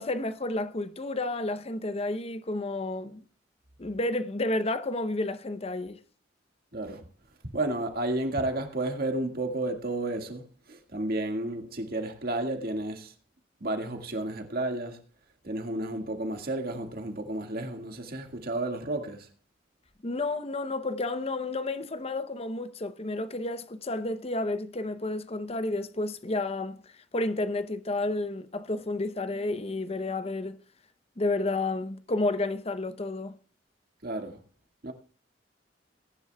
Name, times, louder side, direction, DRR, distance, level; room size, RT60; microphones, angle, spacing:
voice 1, 0.0-3.2 3.8-6.0 20.0-26.8 27.1-30.6 31.2-33.4, left 2 dB, 35° left, 0.7 m, -31 dB
voice 2, 6.7-7.1 7.4-13.1 13.6-15.0 15.4-19.3 34.0-34.4 34.8-34.9, right 2 dB, 55° right, 1.9 m, -32 dB
21.0 x 11.0 x 2.3 m
head